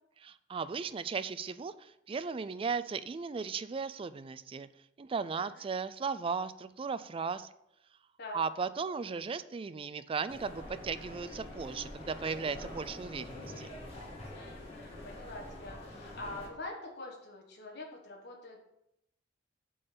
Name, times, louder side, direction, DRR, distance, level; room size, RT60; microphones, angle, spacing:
voice 1, 0.2-4.7 5.0-7.5 8.3-13.7, right 5 dB, 30° right, 14 dB, 0.3 m, -36 dB
sound 1, 10.3-16.5, left 1 dB, 35° left, 1.6 m, -45 dB
voice 2, 14.3-18.7, left 2 dB, 60° left, 0 dB, 1.4 m, -45 dB
7.9 x 3.9 x 6.7 m, 0.82 s
head